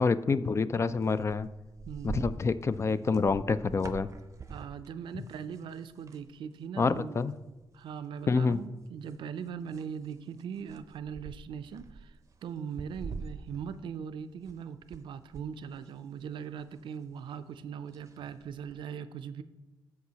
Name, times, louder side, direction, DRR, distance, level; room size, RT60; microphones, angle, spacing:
voice 1, 0.0-1.5 2.0-4.1 6.8-7.3 8.3-8.6, left 4 dB, 35° left, 14 dB, 0.3 m, -27 dB
sound 1, 1.0-6.3 6.6-6.8 7.1-8.0 8.5-15.0 15.3-18.7, right 4 dB, 40° right, 0.6 m, -46 dB
voice 2, 1.9-2.3 4.5-7.2 7.7-19.4, right 7 dB, 85° right, 11 dB, 0.4 m, -40 dB
14.0 x 4.7 x 2.8 m, 1.1 s
cardioid pair, 90°, 8 cm